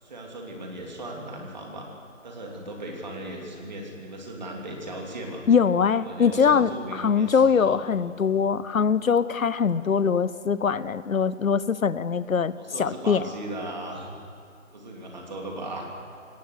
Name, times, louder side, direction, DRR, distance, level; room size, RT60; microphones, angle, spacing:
voice 1, 0.0-1.9 2.2-5.5 5.8-7.8 12.5-14.1 14.7-15.9, right 1 dB, 35° right, 0 dB, 3.1 m, -37 dB
voice 2, 5.5-12.5 12.8-13.2, left 6 dB, 80° left, 16 dB, 0.9 m, -22 dB
22.0 x 18.5 x 6.6 m, 2.5 s
figure-of-eight pair, 175°, 40 cm